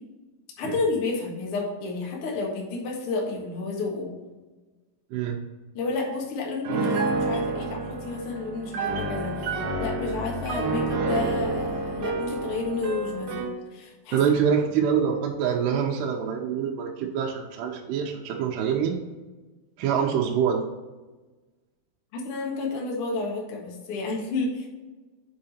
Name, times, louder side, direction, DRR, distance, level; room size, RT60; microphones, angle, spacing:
voice 1, 0.6-4.1 5.7-14.2 22.1-24.7, left 3 dB, 65° left, -2 dB, 1.4 m, -31 dB
Piano, 6.6-13.6, right 3 dB, 65° right, 1.8 m, -29 dB
voice 2, 14.1-19.0 19.8-20.6, right 7 dB, 85° right, -1 dB, 2.7 m, -25 dB
7.6 x 4.8 x 4.2 m, 1.2 s
omnidirectional pair, 5.0 m